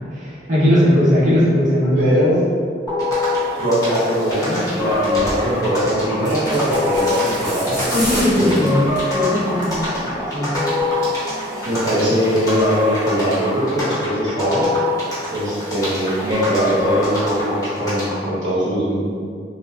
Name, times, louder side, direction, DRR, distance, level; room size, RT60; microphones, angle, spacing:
voice 1, 0.1-2.1 7.9-10.6, equal, 45° right, -10 dB, 0.7 m, -18 dB
voice 2, 2.0-2.5 3.6-8.6 11.6-14.7 15.3-19.0, equal, 90° right, -8 dB, 1.1 m, -21 dB
sound 1, 2.9-18.2, left 2 dB, 20° left, 0.9 m, -24 dB
sound 2, 5.1-5.4 6.2-9.1 9.5-9.8 10.1-10.2, equal, 25° right, 1.1 m, -28 dB
3.1 x 2.5 x 2.2 m, 2.1 s
head